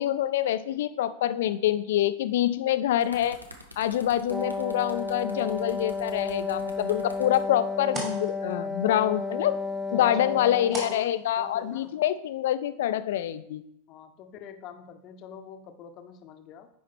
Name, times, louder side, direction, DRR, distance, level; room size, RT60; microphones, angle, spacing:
voice 1, 0.0-3.4 3.8-9.6 9.9-13.6, left 12 dB, 55° left, 13 dB, 0.4 m, -26 dB
sound 1, 2.7-7.4 8.3-8.5, left 1 dB, 90° right, 0.9 m, -48 dB
Wind instrument woodwind instrument, 4.3-11.1, left 4 dB, 5° right, 0.4 m, -32 dB
sound 2, 6.5-11.9, right 2 dB, 25° right, 2.2 m, -43 dB
voice 2, 9.9-10.4 10.9-11.1 11.4-11.9 13.9-16.7, left 8 dB, 35° left, 8 dB, 0.8 m, -45 dB
10.0 x 4.6 x 3.6 m, 0.77 s
figure-of-eight pair, 90°, 0 cm